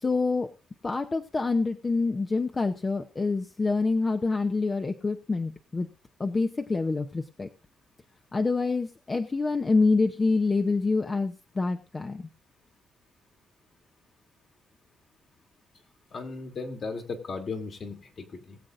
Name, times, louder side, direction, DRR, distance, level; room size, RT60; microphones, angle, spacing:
voice 1, 0.0-0.5 0.8-5.9 6.2-7.5 8.3-12.3, left 3 dB, 25° left, 7 dB, 0.8 m, -26 dB
voice 2, 16.1-18.6, left 4 dB, 50° left, 3 dB, 2.4 m, -36 dB
21.5 x 7.7 x 2.6 m, 0.31 s
cardioid pair, 90°, 0 cm